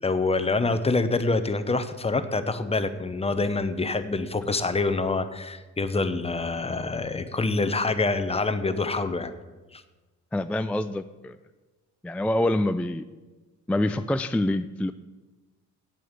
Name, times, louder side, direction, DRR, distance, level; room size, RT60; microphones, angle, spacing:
voice 1, 0.0-9.3 9.7-9.8, left 3 dB, 20° left, 11 dB, 0.9 m, -26 dB
voice 2, 10.3-11.4 12.0-13.0 13.7-14.9, left 1 dB, 5° left, 10 dB, 0.3 m, -26 dB
8.6 x 7.6 x 8.2 m, 1.2 s
cardioid pair, 90°, 30 cm